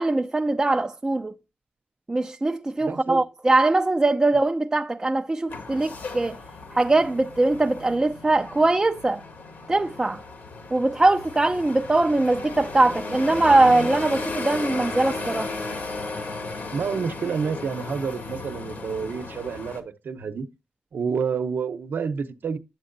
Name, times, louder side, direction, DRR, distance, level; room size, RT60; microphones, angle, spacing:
voice 1, 0.0-1.3 2.1-6.4 6.7-9.2 9.7-10.2 10.7-15.5, right 2 dB, 20° right, 0.5 m, -21 dB
voice 2, 2.9-3.2 16.7-20.5 20.9-22.6, right 6 dB, 65° right, 0.9 m, -29 dB
sound 1, 5.5-19.8, left 3 dB, 65° left, 2.2 m, -36 dB
sound 2, 12.9-16.7, left 1 dB, 20° left, 1.0 m, -36 dB
9.4 x 7.6 x 2.6 m
cardioid pair, 95°, 4 cm